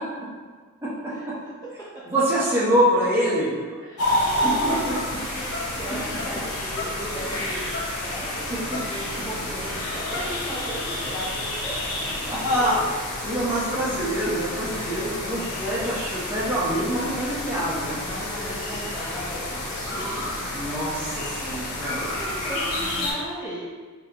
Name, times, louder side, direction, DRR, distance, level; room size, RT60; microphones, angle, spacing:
voice 1, 2.1-3.5 4.4-4.9 12.2-12.9 13.2-18.0 20.5-22.0, equal, 10° right, -9 dB, 1.1 m, -25 dB
voice 2, 3.7-7.6 8.0-11.7 14.7-15.9 16.7-20.3 21.9-23.6, right 1 dB, 15° left, -10 dB, 0.8 m, -37 dB
sound 1, 4.0-23.1, left 1 dB, 75° left, 0.9 m, -29 dB
4.3 x 3.5 x 3.0 m, 1.5 s
head